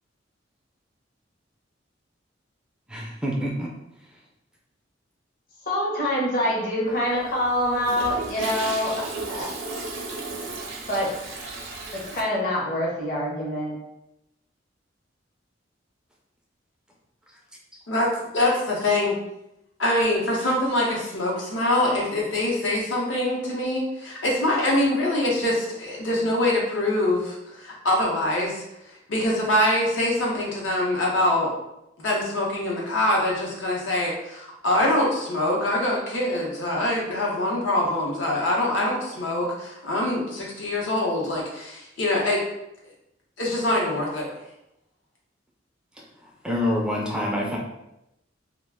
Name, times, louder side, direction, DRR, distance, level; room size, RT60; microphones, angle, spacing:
voice 1, 2.9-3.7 46.2-47.6, left 1 dB, 5° right, -2 dB, 0.3 m, -27 dB
voice 2, 5.7-9.5 10.9-11.1 11.9-13.7, left 1 dB, 50° left, -3 dB, 0.8 m, -25 dB
Toilet flush, 6.9-12.2, right 3 dB, 85° right, 0.5 m, -35 dB
voice 3, 17.9-19.1 19.8-28.6 29.1-31.5 32.0-42.4 43.4-44.3, left 1 dB, 85° left, -3 dB, 0.8 m, -24 dB
2.3 x 2.2 x 3.4 m, 0.86 s
head